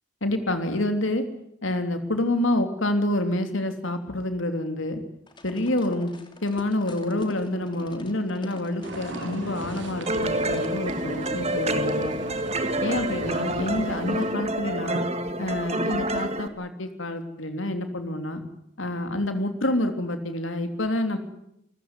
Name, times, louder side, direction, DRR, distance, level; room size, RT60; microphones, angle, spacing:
voice 1, 0.2-1.2 1.6-5.0 5.4-6.1 6.4-12.1 12.8-15.0 15.4-18.4 18.8-21.2, left 1 dB, 70° left, 8 dB, 3.1 m, -27 dB
sound 1, 5.3-10.7, left 1 dB, 25° left, 2.9 m, -45 dB
sound 2, 8.8-14.4, right 2 dB, 60° right, 3.3 m, -37 dB
sound 3, 10.1-16.5, right 1 dB, 30° right, 1.8 m, -28 dB
28.5 x 15.0 x 9.8 m, 0.81 s
head